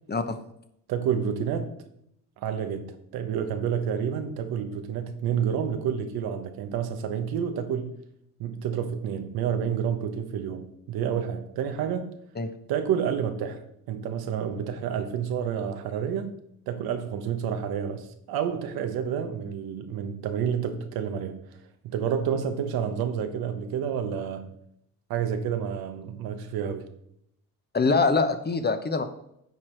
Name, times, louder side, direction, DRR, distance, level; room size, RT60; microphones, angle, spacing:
voice 1, 0.9-1.7 2.4-7.9 8.4-12.1 12.7-13.6 13.9-16.3 16.7-21.4 21.8-24.5 25.1-26.9, right 8 dB, 85° right, 1.1 m, -29 dB
voice 2, 27.7-29.0, left 4 dB, 25° left, 1.0 m, -24 dB
9.4 x 4.6 x 4.5 m
cardioid pair, 80°, 36 cm